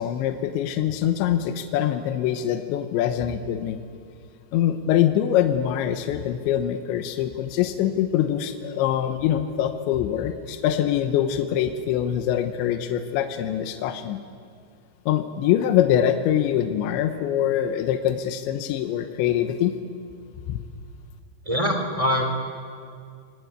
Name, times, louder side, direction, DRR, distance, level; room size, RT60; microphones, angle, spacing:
voice 1, 0.0-3.8 4.5-14.2 15.1-19.7 20.5-20.6, left 10 dB, 80° left, 7 dB, 3.3 m, -24 dB
voice 2, 21.4-22.2, equal, 10° right, 3 dB, 2.1 m, -23 dB
25.0 x 20.5 x 9.6 m, 2.3 s
omnidirectional pair, 5.4 m